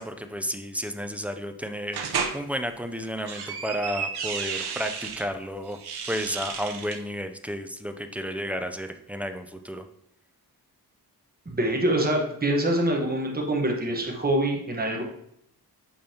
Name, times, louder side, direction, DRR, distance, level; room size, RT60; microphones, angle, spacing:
voice 1, 0.0-5.8 6.1-9.8, equal, 5° right, 7 dB, 0.4 m, -32 dB
sound 1, 1.9-2.4 3.0-5.2 5.7-7.0, right 6 dB, 85° right, 0.8 m, -32 dB
voice 2, 11.5-15.0, right 1 dB, 25° right, 0 dB, 1.2 m, -25 dB
8.6 x 5.3 x 2.8 m, 0.74 s
wide cardioid pair, 140°, 38 cm